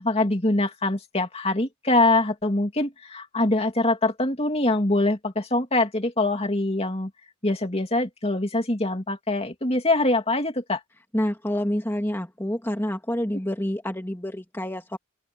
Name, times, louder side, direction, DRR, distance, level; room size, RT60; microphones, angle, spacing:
voice 1, 0.0-7.1 7.4-10.8, left 2 dB, 25° left, 2.8 m, -24 dB
voice 2, 11.1-15.0, equal, 10° left, 2.2 m, -28 dB
open air
head